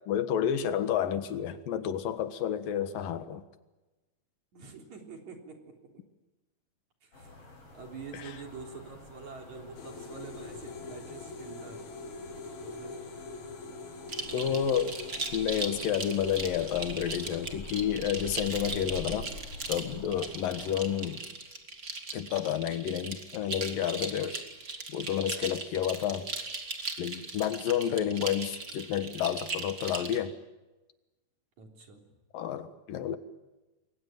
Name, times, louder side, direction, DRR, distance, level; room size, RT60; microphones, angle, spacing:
voice 1, 0.1-3.4 14.3-14.9 15.3-19.3 19.7-21.2 22.1-24.4 24.9-26.3 27.0-30.3 32.3-33.2, left 9 dB, 90° left, 11 dB, 3.2 m, -30 dB
voice 2, 4.5-6.0 7.0-7.3 7.7-11.9 12.6-13.1 14.2-14.7 20.6-20.8 27.6-28.0 31.6-32.1, right 5 dB, 60° right, 3 dB, 5.0 m, -47 dB
sound 1, 7.1-21.1, left 2 dB, 45° left, 8.0 m, -48 dB
sound 2, 9.8-17.6, left 4 dB, 60° left, 3.2 m, -44 dB
sound 3, 14.1-30.2, right 3 dB, 30° right, 2.5 m, -38 dB
28.5 x 22.0 x 9.2 m, 1.1 s
omnidirectional pair, 3.8 m